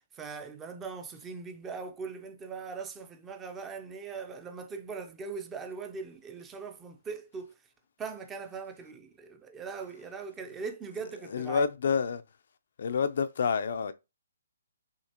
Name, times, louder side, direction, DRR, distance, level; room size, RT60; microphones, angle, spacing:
voice 1, 0.1-7.5 8.0-11.7, right 5 dB, 10° right, 0.5 m, -40 dB
voice 2, 11.3-12.2 12.8-13.9, left 6 dB, 50° left, 0.4 m, -28 dB
6.3 x 2.9 x 2.9 m
hypercardioid pair, 170°, 0 cm